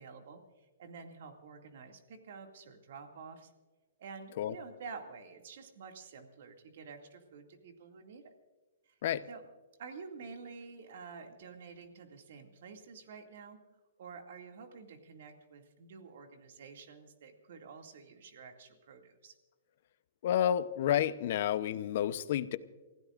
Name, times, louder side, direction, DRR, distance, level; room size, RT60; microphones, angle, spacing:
voice 1, 0.0-3.5 4.0-8.3 8.9-9.0 9.3-9.4 9.8-13.6 14.0-19.3, right 5 dB, 65° right, 4 dB, 2.3 m, -49 dB
voice 2, 20.2-22.6, left 10 dB, 55° left, 14 dB, 0.8 m, -30 dB
28.5 x 16.0 x 2.5 m, 1.3 s
hypercardioid pair, 150°, 0 cm